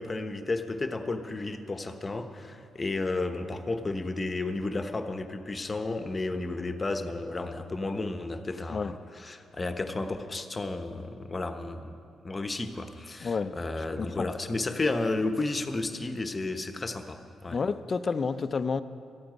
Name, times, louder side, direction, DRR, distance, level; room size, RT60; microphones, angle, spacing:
voice 1, 0.0-12.0 12.2-17.6, left 2 dB, 30° left, 7 dB, 1.1 m, -32 dB
voice 2, 13.2-13.6 14.0-14.3 17.5-18.8, left 5 dB, 45° left, 12 dB, 0.6 m, -30 dB
13.5 x 8.7 x 9.5 m, 2.5 s
cardioid pair, 70°, 0 cm